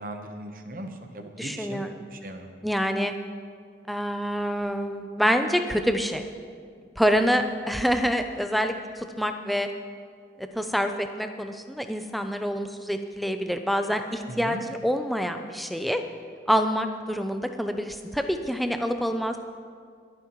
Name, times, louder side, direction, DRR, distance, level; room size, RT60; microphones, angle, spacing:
voice 1, 0.0-1.8 2.1-2.5 14.3-14.6, right 1 dB, 50° right, 5 dB, 1.0 m, -38 dB
voice 2, 1.4-2.0 2.6-3.1 3.9-6.2 7.0-9.7 10.4-16.0 16.5-19.4, equal, ahead, 6 dB, 0.5 m, -26 dB
25.5 x 9.5 x 3.1 m, 2.1 s
head